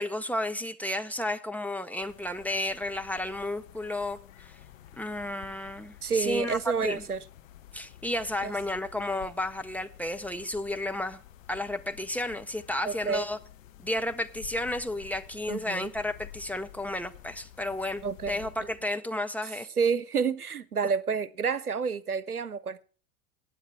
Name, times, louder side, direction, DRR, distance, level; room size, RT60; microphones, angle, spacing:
voice 1, 0.0-4.6 5.0-7.0 7.7-11.2 11.5-13.4 13.8-19.7, left 1 dB, 5° left, 0.5 m, -32 dB
sound 1, 2.0-18.9, left 12 dB, 60° left, 1.2 m, -51 dB
voice 2, 6.0-7.2 8.4-8.5 12.8-13.3 15.5-15.9 18.0-18.7 19.8-22.8, right 6 dB, 90° right, 0.7 m, -29 dB
14.5 x 9.5 x 4.4 m
figure-of-eight pair, 85°, 43 cm